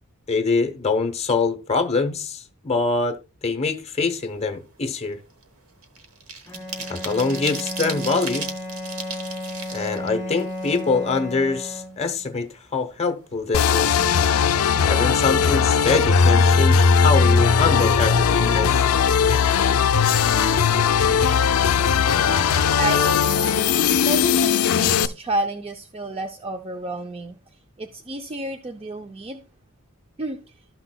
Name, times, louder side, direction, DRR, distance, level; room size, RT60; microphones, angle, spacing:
voice 1, 0.3-5.2 6.9-8.5 9.7-14.0 14.8-18.9, left 4 dB, 30° left, 0.8 m, -24 dB
sound 1, 4.2-4.5 4.8-11.2 11.6-11.7 12.0-13.0 13.3-13.4 13.7-14.0, right 4 dB, 70° right, 1.2 m, -36 dB
Bowed string instrument, 6.5-12.3, left 1 dB, 10° left, 1.3 m, -33 dB
sound 2, 13.5-25.1, left 6 dB, 70° left, 0.4 m, -18 dB
voice 2, 22.8-27.4 27.8-29.4 30.2-30.4, right 2 dB, 25° right, 0.5 m, -30 dB
12.5 x 5.9 x 2.2 m
head